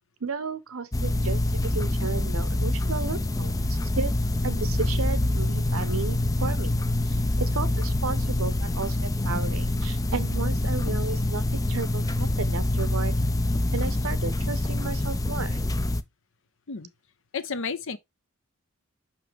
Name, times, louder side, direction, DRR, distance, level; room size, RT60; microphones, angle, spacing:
voice 1, 0.2-4.1 4.4-6.7 7.1-13.1 13.7-15.6, right 4 dB, 75° right, 0.9 m, -34 dB
sound 1, 0.9-16.0, left 1 dB, 15° left, 0.4 m, -26 dB
voice 2, 17.3-18.0, left 5 dB, 65° left, 0.8 m, -31 dB
6.0 x 5.5 x 3.3 m
head